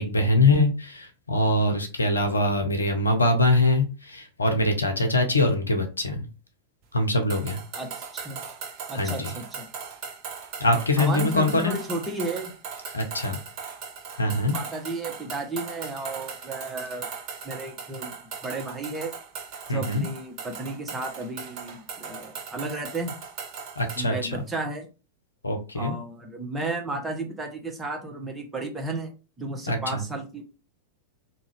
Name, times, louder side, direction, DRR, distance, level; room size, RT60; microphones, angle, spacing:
voice 1, 0.0-6.2 6.9-7.6 8.9-9.3 10.6-11.8 12.9-13.4 14.2-14.5 19.7-20.1 23.8-24.3 25.4-25.9 29.7-30.0, left 2 dB, 80° left, 5 dB, 0.7 m, -23 dB
sound 1, 7.3-24.1, right 6 dB, 40° right, 0.8 m, -38 dB
voice 2, 7.7-8.4 8.9-9.7 11.0-12.5 14.5-17.1 17.4-18.1 18.4-19.1 19.7-23.1 24.0-24.9 25.7-29.1 29.4-30.4, right 2 dB, 10° right, 1 dB, 0.9 m, -33 dB
3.5 x 2.7 x 3.4 m, 0.32 s
figure-of-eight pair, 90°, 0 cm